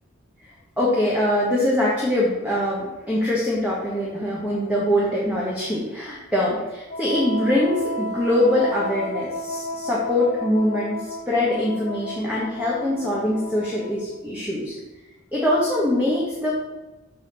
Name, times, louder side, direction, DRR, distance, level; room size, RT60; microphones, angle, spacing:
voice 1, 0.8-11.0 11.3-14.7 15.3-16.5, left 1 dB, 5° right, -6 dB, 1.0 m, -23 dB
Wind instrument woodwind instrument, 6.9-14.2, left 1 dB, 35° left, 0.6 m, -33 dB
5.2 x 4.0 x 5.8 m, 1.1 s
head